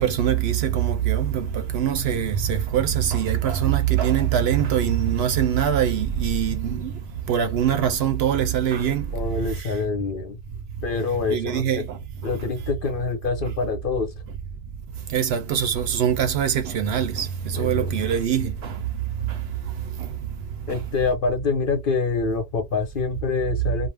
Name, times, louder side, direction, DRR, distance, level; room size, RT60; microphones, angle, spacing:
voice 1, 0.0-6.9 7.3-9.1 11.3-12.0 15.1-18.7 20.0-20.1 20.7-20.8, right 9 dB, 65° right, 0.8 m, -23 dB
voice 2, 9.1-10.4 10.8-11.8 12.2-14.1 17.5-17.9 20.7-23.9, left 4 dB, 55° left, 0.9 m, -26 dB
2.5 x 2.0 x 3.2 m
omnidirectional pair, 1.2 m